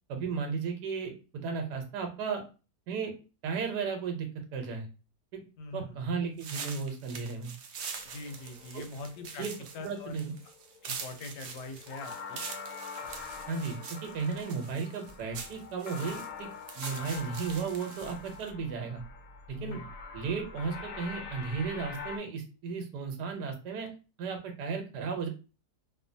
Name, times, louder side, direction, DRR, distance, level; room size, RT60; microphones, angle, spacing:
voice 1, 0.1-2.4 2.9-3.1 3.4-4.9 5.3-5.4 5.7-7.5 8.7-8.8 9.4-9.5 9.8-10.3 13.5-16.5 16.7-19.0 19.5-19.8 20.1-23.9 24.2-25.3, right 5 dB, 85° right, 5 dB, 1.2 m, -34 dB
voice 2, 5.6-6.0 8.0-9.5 9.7-10.2 10.8-12.4 19.5-19.9, left 2 dB, 85° left, 5 dB, 1.2 m, -42 dB
sound 1, 6.4-18.5, right 5 dB, 70° right, 0.7 m, -44 dB
sound 2, 7.8-22.2, left 5 dB, 70° left, 0.8 m, -45 dB
3.0 x 2.1 x 2.6 m, 0.33 s
omnidirectional pair, 1.8 m